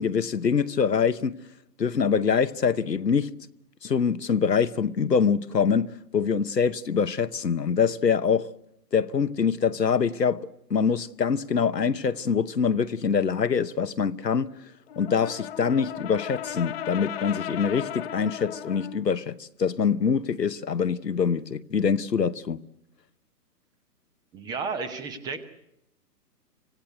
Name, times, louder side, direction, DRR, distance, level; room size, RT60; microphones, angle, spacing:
voice 1, 0.0-1.4 1.8-3.3 3.8-8.5 8.9-14.5 15.0-22.6, left 6 dB, 85° left, 1.0 m, -24 dB
Brass instrument, 14.9-19.0, left 10 dB, 40° left, 1.1 m, -36 dB
voice 2, 24.3-25.4, right 4 dB, 10° right, 0.8 m, -32 dB
25.5 x 17.0 x 8.1 m
figure-of-eight pair, 130°, 48 cm